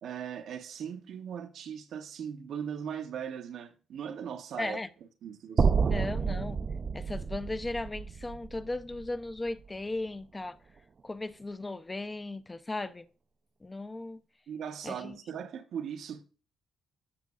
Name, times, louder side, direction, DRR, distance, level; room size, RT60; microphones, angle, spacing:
voice 1, 0.0-4.8 5.2-6.0 14.5-16.2, right 8 dB, 70° right, 0.8 m, -39 dB
voice 2, 4.6-4.9 5.9-6.6 6.9-10.6 11.0-13.0 13.6-14.2 14.8-15.2, left 2 dB, 20° left, 0.5 m, -36 dB
sound 1, 5.6-9.8, right 5 dB, 40° right, 0.4 m, -30 dB
14.5 x 5.3 x 2.3 m
cardioid pair, 90°, 0 cm